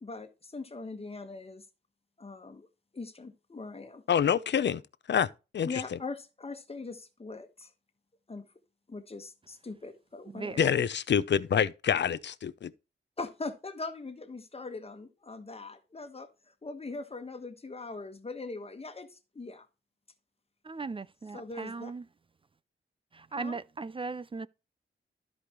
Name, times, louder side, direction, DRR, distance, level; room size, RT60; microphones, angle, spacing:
voice 1, 0.0-1.6 2.2-2.7 2.9-4.0 5.6-7.7 8.3-8.4 8.9-10.7 13.2-19.7 21.3-21.9 23.3-23.6, left 3 dB, 30° left, 1.3 m, -41 dB
voice 2, 4.1-4.8 5.1-5.3 5.5-6.0 10.6-12.7, left 8 dB, 60° left, 0.6 m, -27 dB
voice 3, 10.3-10.8 20.6-22.1 23.1-24.5, right 4 dB, 25° right, 0.3 m, -38 dB
13.0 x 5.0 x 3.0 m
wide cardioid pair, 100°, 20 cm